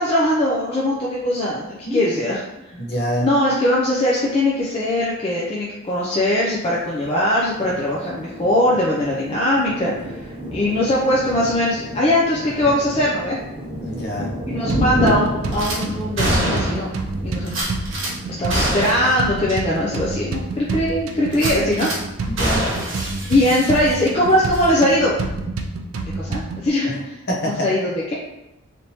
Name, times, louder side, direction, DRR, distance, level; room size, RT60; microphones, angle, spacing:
voice 1, 0.0-2.4 3.2-13.4 14.5-16.9 17.2-17.6 18.4-21.9 23.3-25.1 26.1-27.1 27.4-28.1, left 1 dB, 30° left, -5 dB, 0.4 m, -20 dB
voice 2, 1.8-2.1 2.8-3.3 13.8-14.3 22.2-22.7 26.8-27.0 27.3-27.7, equal, 50° left, -3 dB, 0.8 m, -25 dB
Thunder, 7.0-21.3 21.8-21.9 22.2-22.8, left 1 dB, 25° right, 0.6 m, -31 dB
sound 1, 14.7-26.7, right 3 dB, 80° right, 0.4 m, -29 dB
Gunshot gunfire / Glass, 15.5-15.8 16.2-16.9 17.5-18.1 18.5-19.2 19.5-19.6 20.0-20.1 21.3-22.0 22.4-24.2 24.5-24.7, right 1 dB, 65° right, 1.0 m, -25 dB
3.4 x 2.7 x 2.8 m, 0.97 s
head